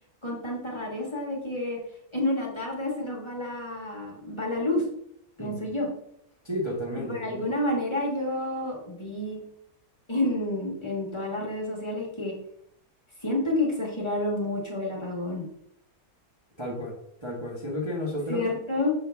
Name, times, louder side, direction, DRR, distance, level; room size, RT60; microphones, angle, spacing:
voice 1, 0.2-1.8 2.1-4.8 5.4-5.9 7.1-9.4 10.1-12.3 13.2-15.5 18.3-19.0, left 1 dB, 20° left, -3 dB, 1.8 m, -29 dB
voice 2, 6.4-7.4 16.6-17.0 17.2-18.4, left 1 dB, 20° right, -4 dB, 1.3 m, -32 dB
7.5 x 6.1 x 3.5 m, 0.72 s
omnidirectional pair, 1.6 m